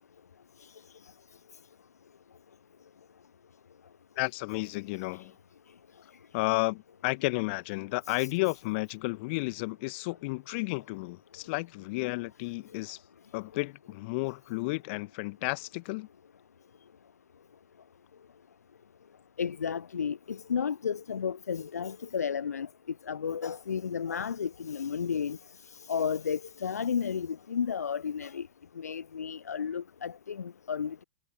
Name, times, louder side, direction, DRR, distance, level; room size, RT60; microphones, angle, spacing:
voice 1, 4.2-5.3 6.3-13.0 13.3-16.1, left 26 dB, 45° left, 1.4 m, -32 dB
voice 2, 19.4-22.7 23.0-25.4 25.7-28.5 28.8-31.0, left 7 dB, 75° left, 0.5 m, -33 dB
figure-of-eight pair, 95°, 9 cm